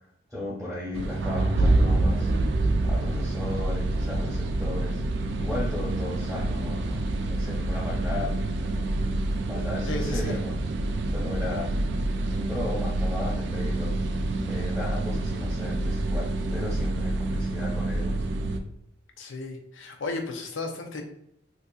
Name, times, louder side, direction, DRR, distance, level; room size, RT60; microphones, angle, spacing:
voice 1, 0.3-2.3 2.8-5.0 5.4-8.9 9.5-10.5 11.1-11.8 12.2-13.9 14.4-18.2, left 1 dB, 5° left, -9 dB, 1.2 m, -35 dB
sound 1, 0.9-18.6, right 2 dB, 65° right, 0.3 m, -27 dB
voice 2, 9.9-10.4 19.2-21.0, left 2 dB, 80° left, 3 dB, 0.6 m, -34 dB
3.8 x 2.6 x 2.3 m, 0.72 s
head